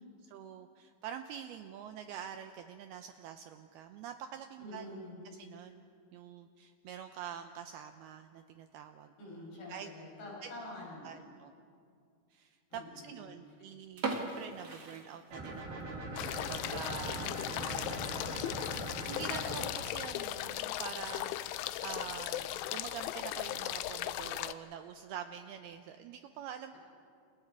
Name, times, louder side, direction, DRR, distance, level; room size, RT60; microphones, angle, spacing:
voice 1, 0.2-4.9 5.3-5.8 6.1-9.1 9.7-9.9 10.4-10.5 11.0-11.5 12.3-16.1 16.5-26.7, right 9 dB, 85° right, 7 dB, 2.3 m, -46 dB
voice 2, 4.6-5.2 9.2-11.2 12.7-13.3 17.0-17.7, left 1 dB, 65° left, -4 dB, 10.0 m, -47 dB
sound 1, 13.9-15.8 16.1-16.2 16.8-17.0 17.4-17.5 17.7-17.8 18.6-18.9, right 3 dB, 40° right, 1.5 m, -39 dB
sound 2, 15.3-19.7, right 1 dB, 65° right, 8.2 m, -41 dB
sound 3, 16.2-24.5, left 13 dB, 85° left, 3.2 m, -37 dB
30.0 x 28.0 x 4.8 m, 2.3 s
omnidirectional pair, 5.3 m